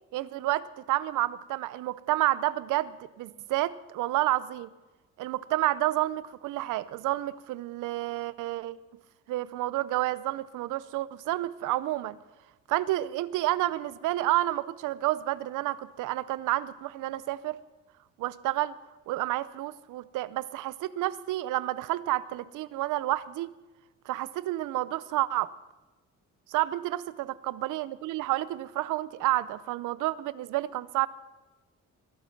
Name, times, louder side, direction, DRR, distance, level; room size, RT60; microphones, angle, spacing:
voice 1, 0.1-4.7 5.2-8.8 9.3-12.2 12.7-17.6 18.2-18.7 19.1-23.5 24.1-25.5 26.5-31.1, right 16 dB, 90° right, 18 dB, 0.6 m, -30 dB
21.0 x 9.0 x 5.9 m, 1.1 s
cardioid pair, 90°, 30 cm